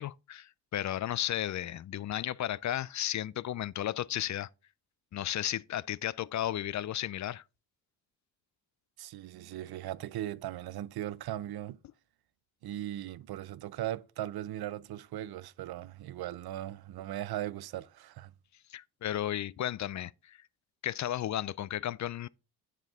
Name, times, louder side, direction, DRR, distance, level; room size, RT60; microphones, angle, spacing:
voice 1, 0.0-4.5 5.1-7.4 18.7-20.4 20.8-22.3, left 12 dB, 45° left, 0.4 m, -34 dB
voice 2, 9.0-11.8 12.6-18.3, right 13 dB, 65° right, 0.6 m, -38 dB
10.5 x 4.6 x 3.5 m
cardioid pair, 70°, 40 cm